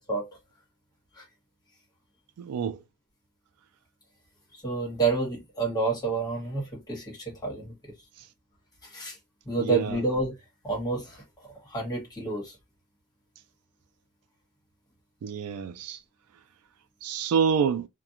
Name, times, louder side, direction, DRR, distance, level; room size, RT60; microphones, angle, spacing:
voice 1, 2.4-2.8 9.6-10.0 15.2-16.0 17.0-17.9, right 6 dB, 75° right, 0.3 m, -27 dB
voice 2, 4.6-7.7 8.8-9.2 9.4-10.3 10.6-11.2 11.7-12.5, right 3 dB, 20° left, 1.3 m, -29 dB
2.4 x 2.2 x 2.8 m
head